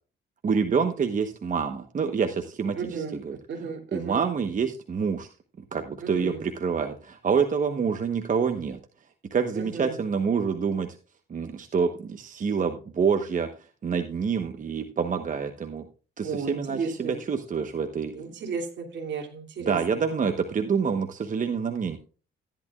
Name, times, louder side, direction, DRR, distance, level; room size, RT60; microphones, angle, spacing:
voice 1, 0.4-3.4 3.9-5.3 5.7-8.8 9.3-10.9 11.3-15.8 16.2-18.1 19.6-22.0, right 6 dB, 40° right, 7 dB, 1.1 m, -27 dB
voice 2, 2.8-4.3 6.0-6.5 9.5-10.0 16.2-17.2 18.1-19.8, right 5 dB, 65° right, 2 dB, 2.9 m, -34 dB
14.0 x 10.5 x 2.4 m, 0.36 s
cardioid pair, 90°, 20 cm